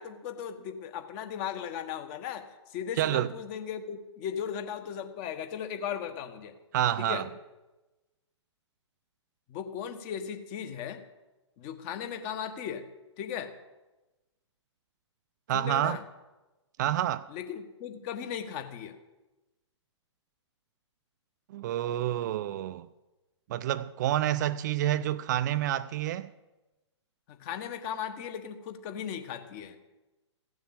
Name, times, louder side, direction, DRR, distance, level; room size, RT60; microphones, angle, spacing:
voice 1, 0.0-6.5 7.0-7.2 9.5-11.0 11.6-12.8 13.2-13.5 15.5-16.0 17.3-18.9 27.3-29.7, left 8 dB, 35° left, 1.3 m, -37 dB
voice 2, 3.0-3.3 6.7-7.3 15.5-16.0 16.8-17.3 21.5-22.9 23.5-26.3, right 12 dB, 40° right, 0.4 m, -28 dB
15.5 x 7.2 x 7.5 m
figure-of-eight pair, 120°, 16 cm